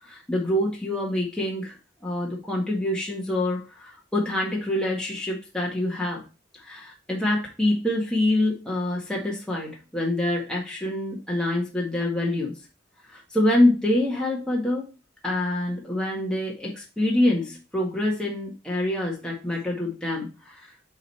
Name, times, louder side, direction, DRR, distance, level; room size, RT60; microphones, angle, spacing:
voice 1, 0.0-1.8 2.0-6.2 6.5-12.5 13.1-14.9 15.2-20.7, left 1 dB, 5° left, -3 dB, 1.7 m, -26 dB
7.9 x 4.0 x 4.3 m, 0.31 s
head